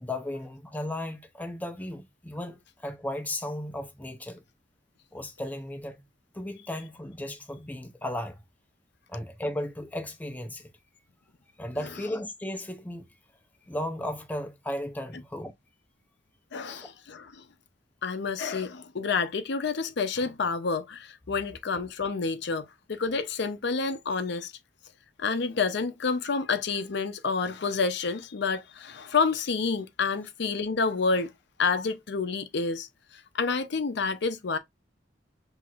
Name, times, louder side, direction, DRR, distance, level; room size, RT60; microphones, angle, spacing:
voice 1, 0.0-4.4 5.1-6.0 6.3-8.4 9.1-10.7 11.6-13.1 13.7-15.5 16.6-16.9 32.3-32.4, left 1 dB, 10° left, 0.5 m, -35 dB
voice 2, 16.5-17.4 18.0-24.5 25.2-31.3 31.6-32.9 33.3-34.6, left 4 dB, 65° left, 0.6 m, -29 dB
6.0 x 2.8 x 2.4 m
head